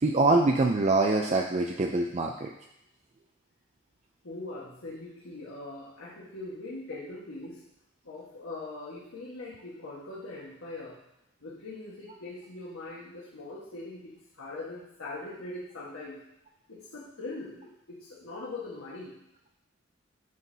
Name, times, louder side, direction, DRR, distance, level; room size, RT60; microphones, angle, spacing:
voice 1, 0.0-2.5, right 2 dB, 35° right, 2 dB, 0.4 m, -24 dB
voice 2, 4.2-7.6 8.0-11.0 11.4-16.2 16.7-19.2, left 2 dB, 80° left, -7 dB, 1.4 m, -41 dB
9.2 x 6.3 x 2.8 m, 0.84 s
head